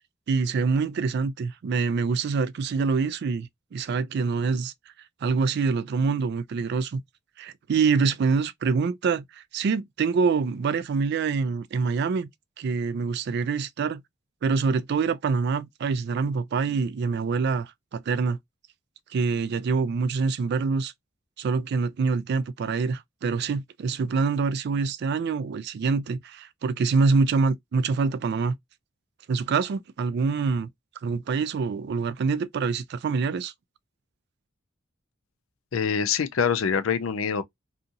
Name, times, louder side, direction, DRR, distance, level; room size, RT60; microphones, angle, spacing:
voice 1, 0.3-4.7 5.2-7.0 7.4-12.3 12.6-14.0 14.4-18.4 19.1-20.9 21.4-28.5 29.3-30.7 31.0-33.5, right 4 dB, 55° right, 0.3 m, -25 dB
voice 2, 35.7-37.4, left 6 dB, 80° left, 0.5 m, -25 dB
2.8 x 2.6 x 2.5 m
head